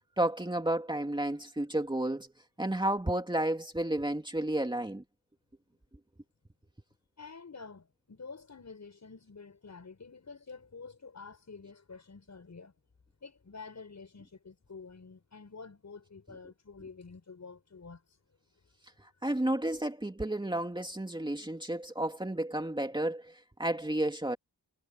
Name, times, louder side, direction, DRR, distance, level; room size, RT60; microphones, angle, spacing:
voice 1, 0.2-2.3 2.6-5.0 19.2-24.4, right 1 dB, 10° right, 2.8 m, -31 dB
voice 2, 7.2-12.7 13.2-18.0, left 4 dB, 45° left, 7.4 m, -48 dB
wide cardioid pair, 130°, 38 cm